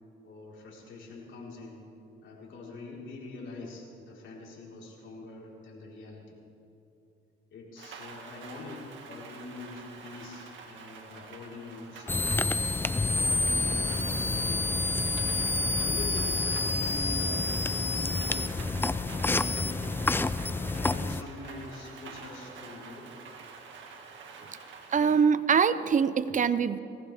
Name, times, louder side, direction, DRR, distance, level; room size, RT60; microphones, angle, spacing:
voice 1, 0.2-1.8 2.2-6.4 7.5-12.6 13.0-15.0 15.6-18.7 19.0-20.1 20.6-23.1, left 2 dB, 70° left, -4 dB, 4.3 m, -44 dB
Rain, 7.8-25.2, right 5 dB, 70° right, 2.0 m, -48 dB
sound 1, 12.1-21.2, left 3 dB, 10° left, 0.4 m, -28 dB
voice 2, 24.9-26.8, right 6 dB, 40° right, 14 dB, 0.6 m, -23 dB
20.0 x 18.0 x 3.5 m, 2.8 s
cardioid pair, 90°, 20 cm